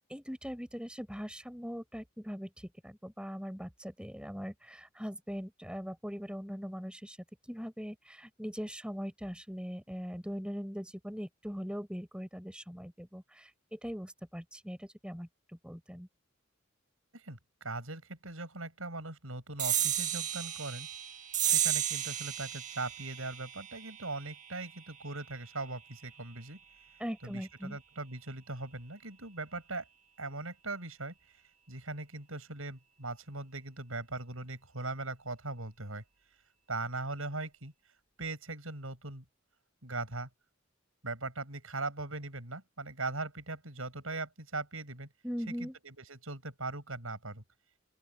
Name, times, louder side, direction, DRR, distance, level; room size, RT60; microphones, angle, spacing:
voice 1, 0.1-7.2 7.5-15.3 15.6-16.1 27.0-27.8 45.2-45.8, equal, 5° right, 7.1 m, -41 dB
voice 2, 17.1-20.9 21.4-26.6 27.2-29.9 30.2-31.4 31.7-36.0 36.7-37.7 38.2-39.2 39.8-40.3 41.0-45.1 45.6-47.4, right 3 dB, 90° right, 6.6 m, -40 dB
sound 1, 19.6-26.4, right 10 dB, 40° right, 1.7 m, -34 dB
open air
head